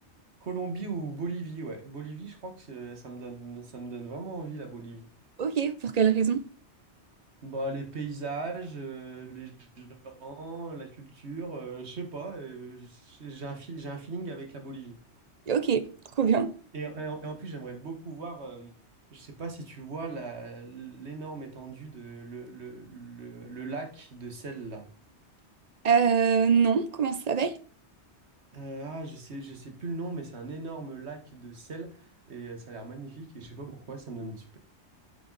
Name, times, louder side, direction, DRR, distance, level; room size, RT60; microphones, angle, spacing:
voice 1, 0.4-5.1 7.4-15.0 16.7-18.7 19.1-24.9 28.5-34.6, right 3 dB, 70° right, 1.8 m, -39 dB
voice 2, 5.4-6.4 15.5-15.9 16.2-16.5 25.8-27.5, right 6 dB, 45° right, 0.6 m, -23 dB
8.1 x 5.7 x 4.0 m
omnidirectional pair, 1.1 m